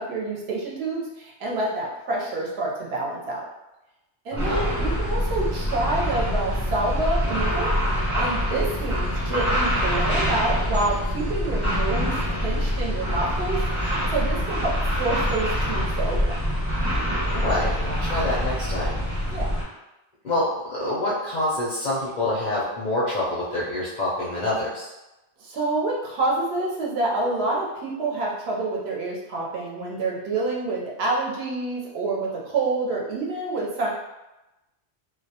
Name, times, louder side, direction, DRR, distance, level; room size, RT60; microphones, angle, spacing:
voice 1, 0.0-3.4 4.2-7.7 8.1-16.4 19.3-19.6 25.4-33.9, right 2 dB, 65° right, -3 dB, 0.8 m, -28 dB
voice 2, 4.3-4.7 17.3-18.9 20.2-24.9, left 1 dB, 55° left, -7 dB, 0.5 m, -26 dB
sound 1, 4.4-19.6, equal, 25° right, 0.9 m, -25 dB
2.2 x 2.1 x 2.7 m, 0.99 s
omnidirectional pair, 1.2 m